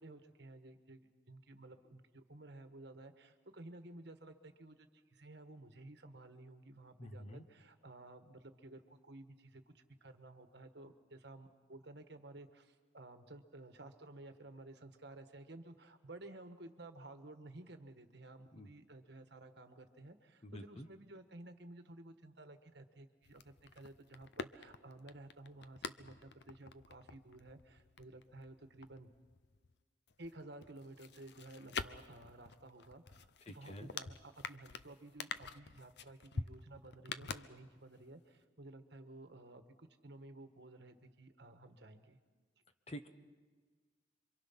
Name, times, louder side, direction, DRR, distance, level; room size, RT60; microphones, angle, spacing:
voice 1, 0.0-29.1 30.2-42.2, right 2 dB, 55° right, 7 dB, 1.4 m, -54 dB
voice 2, 7.0-7.4 18.5-18.7 20.4-20.9 33.5-33.9 42.9-43.1, equal, 30° left, 8 dB, 1.0 m, -48 dB
sound 1, 23.2-29.7 30.1-38.0 38.3-38.4, left 5 dB, 55° left, 0.7 m, -48 dB
27.5 x 24.0 x 5.8 m, 1.4 s
head